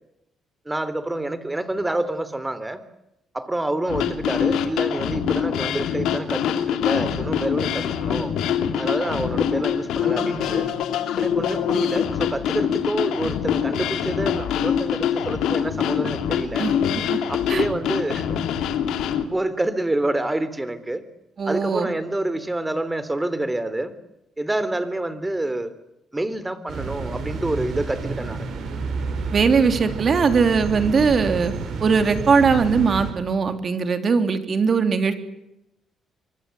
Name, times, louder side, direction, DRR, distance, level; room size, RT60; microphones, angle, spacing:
voice 1, 0.6-2.8 3.3-8.3 8.8-10.7 11.2-16.7 17.3-18.4 19.3-21.0 21.4-23.9 24.4-25.7 26.1-28.5, right 1 dB, 15° right, 14 dB, 3.4 m, -27 dB
sound 1, 3.9-19.3, left 8 dB, 85° left, 2.6 m, -24 dB
voice 2, 16.6-17.2 17.5-17.6 21.4-21.9 29.3-31.5 31.8-35.2, right 5 dB, 45° right, 8 dB, 3.4 m, -20 dB
sound 2, 26.7-33.1, right 4 dB, 70° right, 7.2 m, -30 dB
25.0 x 24.5 x 8.0 m, 0.86 s
cardioid pair, 90°, 0 cm